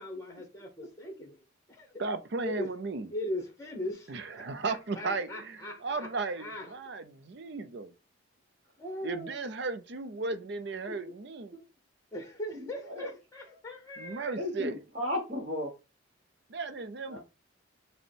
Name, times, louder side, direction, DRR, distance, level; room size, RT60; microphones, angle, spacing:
voice 1, 0.0-1.9 2.4-2.7 3.1-6.1 6.3-6.8 8.8-9.4 12.1-14.4, left 1 dB, 15° left, 0.9 m, -40 dB
voice 2, 2.0-3.1 4.1-7.9 9.0-11.5 14.0-14.8 16.5-17.2, right 3 dB, 55° right, 0.5 m, -35 dB
voice 3, 12.5-13.1 14.3-15.7 17.1-17.2, left 1 dB, 35° right, 0.9 m, -35 dB
5.3 x 2.1 x 4.4 m
head